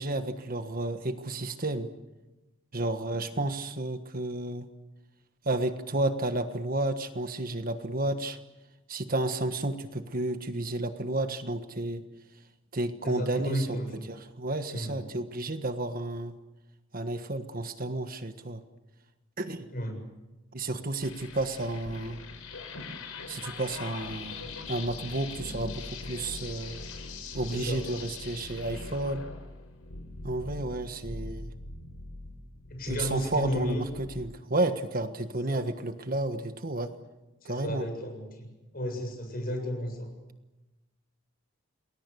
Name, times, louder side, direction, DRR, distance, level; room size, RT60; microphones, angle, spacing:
voice 1, 0.0-1.9 2.7-4.7 5.4-8.4 8.9-12.0 12.7-13.8 14.1-16.3 16.9-18.6 19.4-19.7 20.5-22.2 23.3-26.8 27.3-29.2 30.2-31.5 32.9-36.9 37.4-37.9, right 2 dB, 40° right, 8 dB, 1.4 m, -31 dB
voice 2, 13.0-14.0 14.7-15.0 19.7-20.0 27.4-27.8 32.7-33.8 35.5-35.6 37.4-38.5 38.7-40.1, equal, 45° left, 4 dB, 7.5 m, -33 dB
sound 1, 21.0-34.1, left 3 dB, 90° left, 4.8 m, -41 dB
29.0 x 21.0 x 7.0 m, 1.1 s
head